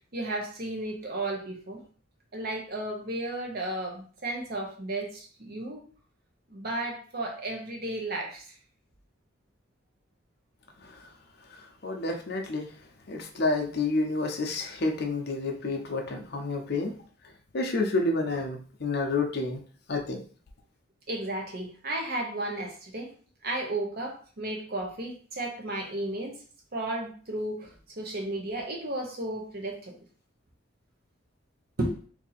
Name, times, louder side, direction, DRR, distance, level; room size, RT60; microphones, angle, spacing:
voice 1, 0.1-1.8 2.3-5.8 6.5-8.4 21.1-23.1 23.4-26.4 26.7-29.9 31.8-32.0, right 1 dB, 50° right, 2 dB, 0.8 m, -33 dB
voice 2, 11.5-12.7 13.1-16.9 17.5-19.6 19.9-20.2, left 3 dB, 50° left, 3 dB, 0.6 m, -29 dB
2.7 x 2.7 x 3.9 m, 0.41 s
head